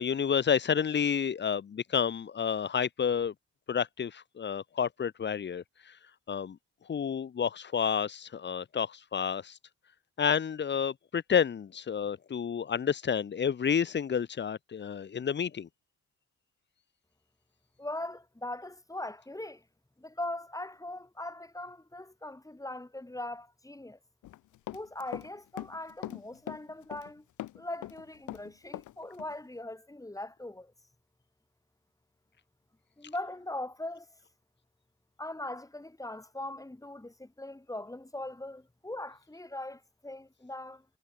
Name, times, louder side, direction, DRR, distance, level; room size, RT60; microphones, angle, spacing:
voice 1, 0.0-3.3 3.7-5.9 6.3-6.6 6.9-9.6 10.2-15.7, left 7 dB, 40° left, 0.9 m, -30 dB
voice 2, 17.8-19.6 20.0-24.0 24.7-27.3 27.6-30.7 33.0-34.2 35.2-40.9, left 1 dB, 10° left, 4.1 m, -40 dB
Run, 24.2-25.3 25.6-27.1 27.4-28.9 29.2-29.3, left 15 dB, 85° left, 4.7 m, -41 dB
cardioid pair, 75°, 29 cm